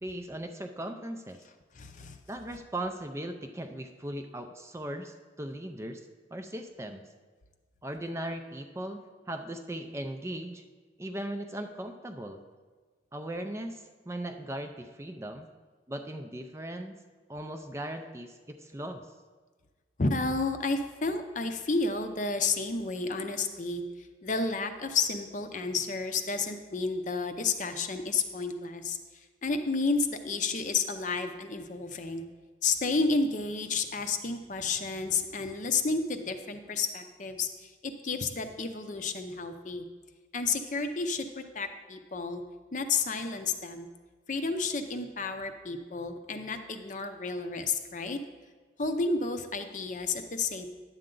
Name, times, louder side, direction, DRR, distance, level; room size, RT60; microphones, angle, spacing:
voice 1, 0.0-1.4 2.3-6.0 6.3-7.0 7.8-10.6 11.0-12.4 13.1-15.5 15.9-16.9 17.3-19.0, right 1 dB, 15° right, 6 dB, 0.4 m, -38 dB
voice 2, 1.7-2.2 20.0-32.3 32.6-39.9 40.3-42.4 42.7-43.9 44.3-48.2 48.8-50.7, left 4 dB, 40° left, 7 dB, 0.6 m, -31 dB
10.5 x 7.7 x 3.8 m, 1.4 s
head